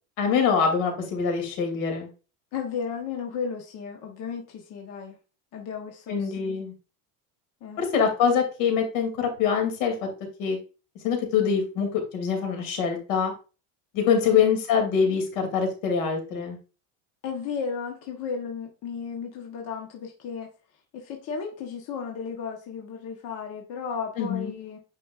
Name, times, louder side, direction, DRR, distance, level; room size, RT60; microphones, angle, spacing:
voice 1, 0.2-2.1 6.1-6.7 7.8-10.1 10.4-10.6 11.0-13.3 13.9-16.6 24.2-24.5, left 6 dB, 75° left, 4 dB, 2.7 m, -24 dB
voice 2, 2.5-5.1 5.5-6.6 7.6-7.8 14.3-14.5 17.2-20.5 20.9-24.8, left 6 dB, 40° left, 1 dB, 1.1 m, -34 dB
8.8 x 5.2 x 2.5 m, 0.33 s
cardioid pair, 180°, 40 cm